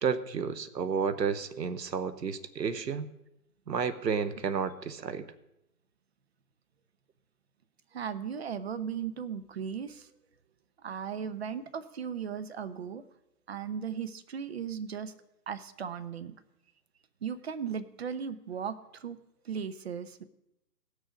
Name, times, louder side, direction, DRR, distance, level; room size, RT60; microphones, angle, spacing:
voice 1, 0.0-3.1 3.7-5.3, right 6 dB, 90° right, 13 dB, 1.0 m, -31 dB
voice 2, 7.9-10.1 10.8-13.0 13.5-15.1 15.5-16.4 17.2-19.2 19.4-20.2, right 7 dB, 40° right, 13 dB, 0.6 m, -37 dB
17.0 x 6.4 x 5.0 m, 0.88 s
hypercardioid pair, 150°, 48 cm